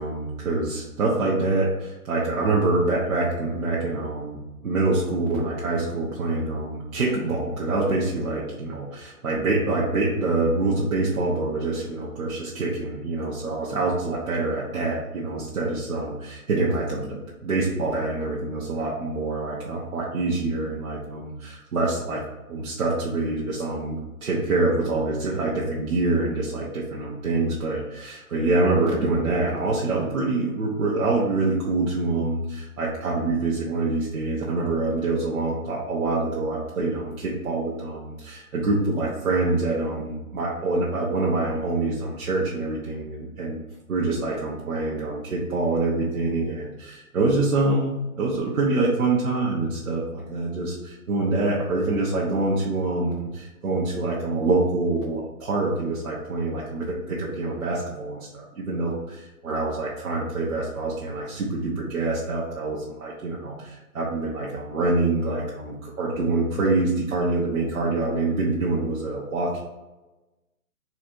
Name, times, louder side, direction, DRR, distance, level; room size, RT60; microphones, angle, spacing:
voice 1, 0.0-22.2 22.5-43.6 43.9-69.6, right 2 dB, 65° right, -4 dB, 1.0 m, -25 dB
4.1 x 2.5 x 4.5 m, 1.1 s
hypercardioid pair, 150°, 45 cm